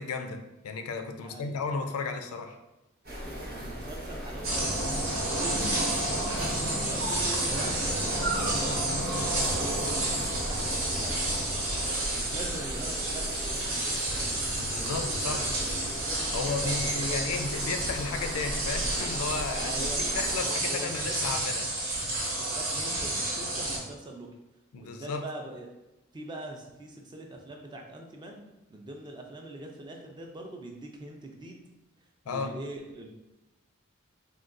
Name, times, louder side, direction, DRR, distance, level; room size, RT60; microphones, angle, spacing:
voice 1, 0.0-2.6 14.6-15.5 16.3-19.7 20.1-21.7 24.7-25.2 32.3-32.5, left 4 dB, 85° left, 6 dB, 0.4 m, -34 dB
voice 2, 1.2-1.6 3.2-7.2 7.5-11.6 12.1-14.1 16.3-17.3 19.6-20.1 20.4-21.1 22.4-24.3 24.8-25.7 26.1-28.4 28.7-31.6 32.3-33.1, right 1 dB, 20° right, 2 dB, 0.3 m, -43 dB
sound 1, 3.0-20.4, equal, 45° right, 0.8 m, -37 dB
sound 2, 4.4-23.8, right 1 dB, 80° right, 1.0 m, -30 dB
3.7 x 2.2 x 2.5 m, 0.98 s
head